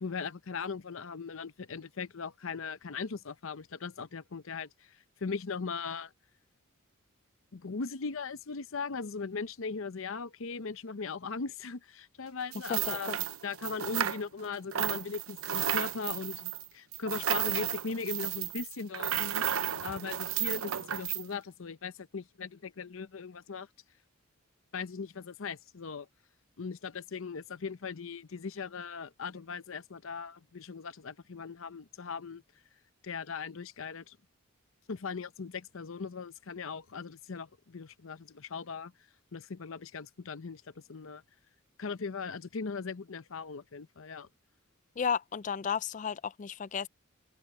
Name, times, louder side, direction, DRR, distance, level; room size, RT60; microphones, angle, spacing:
voice 1, 0.0-4.7 5.2-6.1 7.5-13.1 13.4-19.4 19.8-23.7 24.7-26.1 26.6-32.4 33.0-34.2 34.9-38.9 39.3-40.6 40.9-41.2 41.8-44.3, left 5 dB, 70° left, 0.7 m, -39 dB
sound 1, 12.5-14.5 14.7-21.2, right 10 dB, 80° right, 0.7 m, -33 dB
voice 2, 12.7-13.2 45.0-46.9, left 7 dB, 35° left, 0.3 m, -33 dB
head